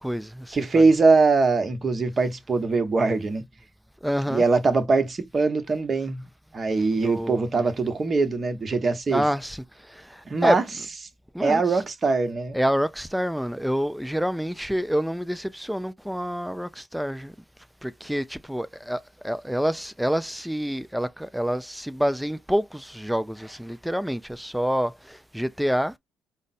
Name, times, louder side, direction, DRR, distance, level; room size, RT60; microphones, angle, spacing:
voice 1, 0.0-0.9 4.0-4.5 7.0-7.7 9.1-10.9 11.3-11.8 12.5-17.3 17.8-25.9, equal, ahead, 0.5 m, -28 dB
voice 2, 0.5-3.5 4.3-6.2 6.5-9.2 10.3-10.6 11.4-12.6, right 3 dB, 30° right, 1.0 m, -22 dB
5.0 x 2.1 x 4.2 m
cardioid pair, 115°, 0 cm